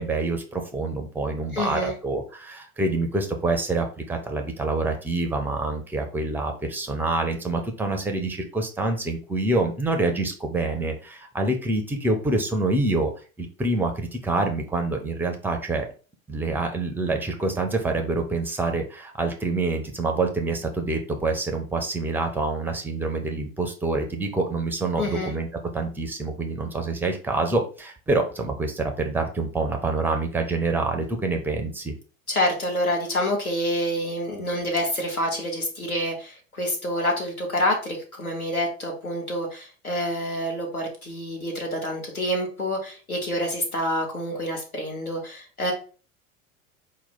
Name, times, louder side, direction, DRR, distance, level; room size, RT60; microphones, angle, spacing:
voice 1, 0.0-13.1 13.4-15.9 16.3-25.5 25.7-31.9, right 2 dB, 5° right, 4 dB, 0.4 m, -26 dB
voice 2, 1.5-1.9 25.0-25.3 32.3-45.7, left 1 dB, 85° left, 0 dB, 1.1 m, -27 dB
4.1 x 2.1 x 4.2 m, 0.37 s
figure-of-eight pair, 75°, 42 cm